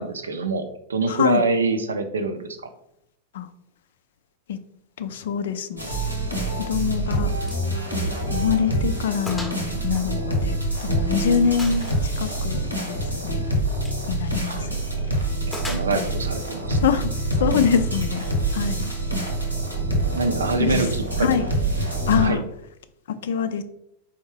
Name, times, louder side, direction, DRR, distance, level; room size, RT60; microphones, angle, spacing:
voice 1, 0.0-2.7 14.4-14.7 15.5-16.8 20.1-21.3 22.2-22.4, right 3 dB, 70° right, 8 dB, 0.5 m, -25 dB
voice 2, 1.1-1.4 3.3-3.5 4.5-4.6 5.0-5.9 6.6-7.3 8.3-13.4 14.1-14.8 16.8-17.1 17.4-18.3 18.5-18.9 20.6-20.9 21.2-21.4 22.1-22.4 23.2-23.6, left 7 dB, 60° left, 11 dB, 0.3 m, -24 dB
sound 1, 5.8-22.3, right 1 dB, 90° right, 1.0 m, -26 dB
Gunshot gunfire, 7.5-7.7 8.0-8.1 8.6-8.7 9.3-9.6 9.9-10.9 11.6-12.1 13.7-14.0 15.5-16.3, left 1 dB, 5° left, 0.7 m, -37 dB
4.3 x 3.5 x 3.2 m, 0.78 s
figure-of-eight pair, 90°, 0 cm